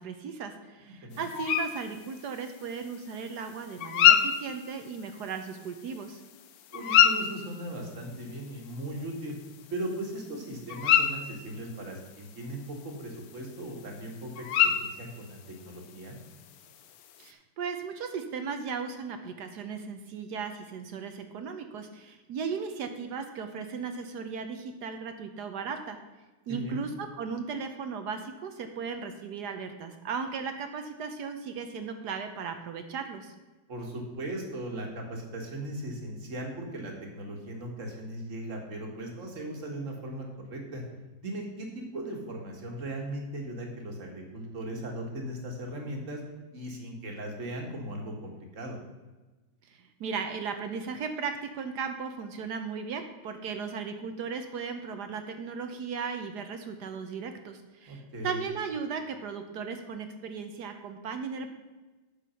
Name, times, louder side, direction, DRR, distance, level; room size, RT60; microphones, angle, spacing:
voice 1, 0.0-6.2 17.2-26.0 26.5-33.3 49.7-61.5, right 5 dB, 65° right, 7 dB, 1.2 m, -36 dB
sound 1, 1.1-17.3, left 9 dB, 65° left, 0.9 m, -30 dB
voice 2, 6.7-9.3 9.7-16.2 26.5-26.8 33.7-40.8 41.2-46.2 46.5-48.8 57.9-58.4, right 1 dB, 40° right, 1 dB, 1.9 m, -38 dB
9.1 x 6.6 x 5.7 m, 1.2 s
omnidirectional pair, 2.2 m